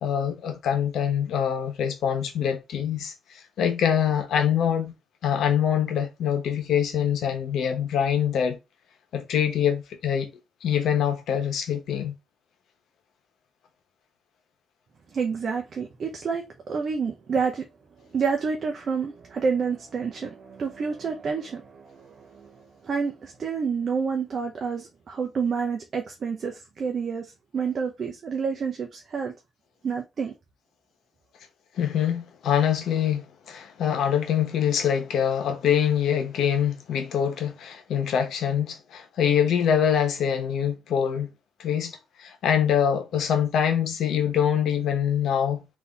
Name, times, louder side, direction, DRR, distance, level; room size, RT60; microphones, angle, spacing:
voice 1, 0.0-3.1 3.6-4.9 5.2-8.6 9.1-10.3 10.6-12.1 31.8-41.3 41.6-41.9 42.2-45.6, left 8 dB, 75° left, 1.0 m, -24 dB
voice 2, 15.1-17.6 18.1-29.3 29.8-30.3, right 5 dB, 50° right, 0.6 m, -29 dB
3.8 x 2.7 x 4.0 m
cardioid pair, 110°, 0 cm